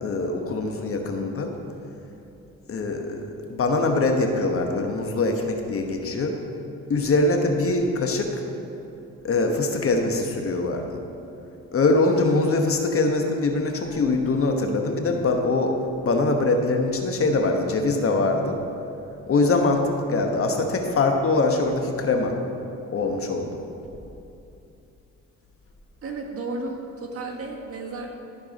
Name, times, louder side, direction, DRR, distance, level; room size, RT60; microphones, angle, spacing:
voice 1, 0.0-1.5 2.7-3.2 3.5-6.4 6.9-8.3 9.2-11.0 11.7-15.7 16.0-18.6 19.3-22.4 22.9-23.6, left 3 dB, 45° left, 4 dB, 1.1 m, -23 dB
voice 2, 26.0-28.1, right 3 dB, 50° right, 0 dB, 1.6 m, -33 dB
13.5 x 4.7 x 5.1 m, 2.8 s
cardioid pair, 90°, 30 cm